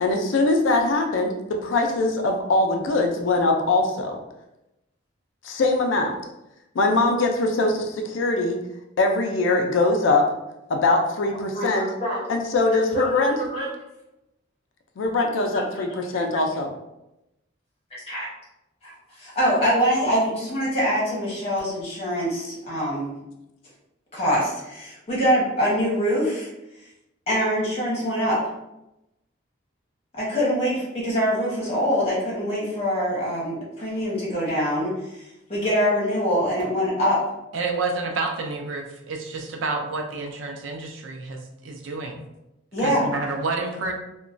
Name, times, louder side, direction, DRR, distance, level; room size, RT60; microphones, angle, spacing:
voice 1, 0.0-4.2 5.4-6.2 6.8-8.6 9.0-10.3 10.7-11.9 12.3-13.3 15.0-16.7, left 2 dB, 80° left, 3 dB, 0.4 m, -22 dB
voice 2, 11.5-12.2 12.7-13.7 15.5-15.8 16.1-16.2 18.1-18.3 18.8-18.9 19.2-23.1 24.1-26.5 27.3-28.4 30.2-34.9 35.5-37.2 42.7-43.1, equal, 30° left, -6 dB, 1.1 m, -24 dB
voice 3, 37.5-42.2 42.8-43.9, right 3 dB, 85° right, 2 dB, 0.5 m, -29 dB
2.9 x 2.2 x 2.5 m, 0.91 s
head